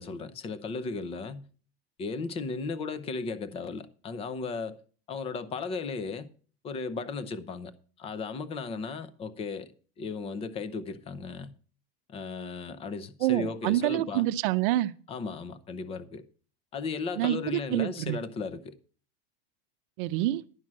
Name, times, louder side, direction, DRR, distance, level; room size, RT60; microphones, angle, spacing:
voice 1, 0.0-1.5 2.0-4.8 5.1-6.3 6.6-7.7 8.0-9.7 10.0-11.5 12.1-14.3 15.1-16.2 16.7-18.7, left 4 dB, 20° left, 0.6 m, -35 dB
voice 2, 13.2-14.9 17.2-18.2 20.0-20.4, right 15 dB, 55° right, 0.7 m, -27 dB
11.0 x 6.0 x 7.4 m
supercardioid pair, 165°, 31 cm